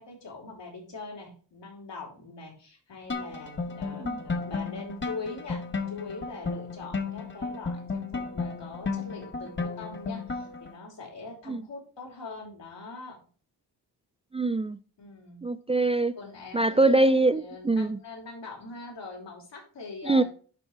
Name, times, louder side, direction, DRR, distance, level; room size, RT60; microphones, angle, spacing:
voice 1, 0.0-13.2 15.0-15.4 16.2-20.2, left 3 dB, 80° left, 4.1 m, -42 dB
sound 1, 3.1-10.7, left 4 dB, 25° left, 1.1 m, -34 dB
voice 2, 14.3-14.8 15.4-16.1 16.5-18.0 20.1-20.2, right 2 dB, 15° right, 0.3 m, -23 dB
11.5 x 4.5 x 3.3 m
cardioid pair, 80°, 42 cm